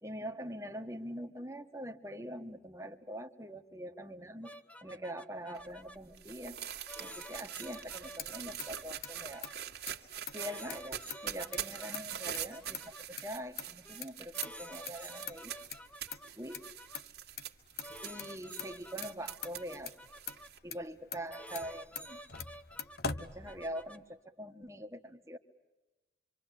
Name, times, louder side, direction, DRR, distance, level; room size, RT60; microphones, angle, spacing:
voice 1, 0.0-4.5 4.8-6.6 7.0-9.5 10.3-15.5 16.3-16.7 18.0-20.0 20.6-22.2 23.1-25.4, equal, 15° right, 6 dB, 1.5 m, -43 dB
sound 1, 4.4-6.0 6.9-9.5 10.4-13.0 13.8-14.0 14.3-17.0 17.8-20.5 21.3-24.0, equal, 5° left, 0.9 m, -50 dB
sound 2, 5.5-20.6, right 10 dB, 60° right, 1.9 m, -44 dB
Motor vehicle (road), 7.8-24.0, left 6 dB, 60° left, 1.0 m, -46 dB
26.5 x 25.5 x 8.4 m, 1.1 s
head